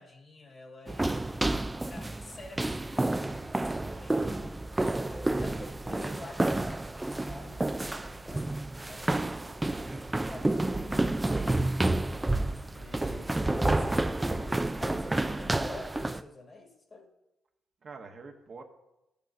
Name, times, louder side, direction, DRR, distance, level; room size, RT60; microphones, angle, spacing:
voice 1, 0.0-1.3 1.9-4.7 5.0-6.8 7.3-8.6 8.9-9.4 10.3-11.7 12.7-17.1, left 2 dB, 35° left, 2 dB, 1.6 m, -49 dB
sound 1, 0.9-16.2, right 2 dB, 15° right, 0.3 m, -30 dB
voice 2, 9.3-10.3 17.8-18.6, right 4 dB, 45° right, 3 dB, 1.0 m, -48 dB
12.0 x 8.2 x 2.6 m, 0.93 s
cardioid pair, 90°, 0 cm